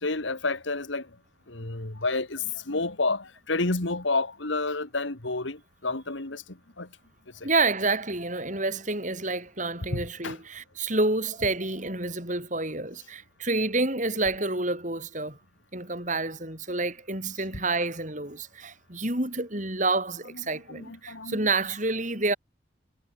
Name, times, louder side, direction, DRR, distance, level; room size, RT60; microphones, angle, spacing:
voice 1, 0.0-1.1 1.5-6.4 6.8-6.9 7.4-7.5 9.9-10.4 20.7-21.4, left 3 dB, 70° left, 2.1 m, -30 dB
voice 2, 7.4-15.4 15.7-22.4, right 2 dB, 40° right, 7.2 m, -28 dB
head